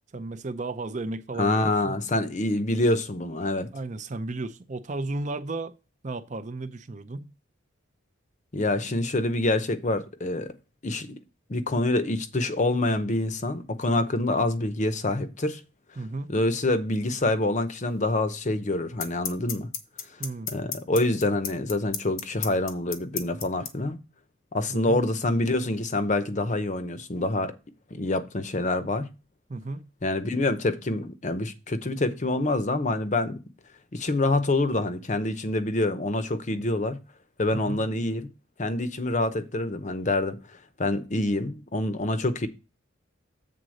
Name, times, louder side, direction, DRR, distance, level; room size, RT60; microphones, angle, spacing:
voice 1, 0.1-1.9 3.7-5.7 6.0-7.3 16.0-16.3 20.2-20.5 24.7-25.0 29.5-29.8 37.5-37.8, right 2 dB, 35° right, 0.5 m, -34 dB
voice 2, 1.3-3.7 8.5-10.5 10.8-11.2 11.5-15.6 16.3-19.7 20.5-24.0 24.5-27.5 27.9-29.1 30.0-33.4 33.9-37.0 37.4-38.3 38.6-40.4 40.8-42.5, left 2 dB, 35° left, 0.7 m, -26 dB
sound 1, 17.9-18.0 19.0-23.7, left 9 dB, 90° left, 1.1 m, -31 dB
7.8 x 3.9 x 6.3 m
head